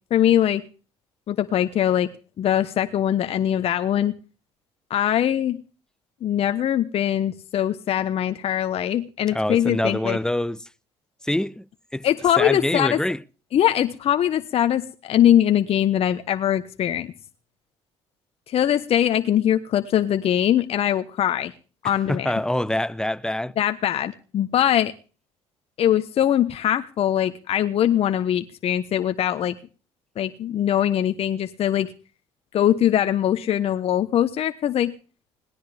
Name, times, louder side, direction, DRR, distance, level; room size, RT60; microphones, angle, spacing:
voice 1, 0.1-0.6 1.3-2.1 2.4-4.1 4.9-5.6 6.2-10.2 12.0-13.0 13.5-17.1 18.5-21.5 21.8-22.3 23.6-24.9 25.8-29.6 30.2-31.9 32.5-34.9, left 11 dB, 55° left, 1.2 m, -22 dB
voice 2, 9.3-10.7 11.2-12.1 12.4-13.2 22.1-23.6, left 1 dB, 5° left, 0.9 m, -25 dB
21.0 x 19.0 x 3.6 m
hypercardioid pair, 65°, 12 cm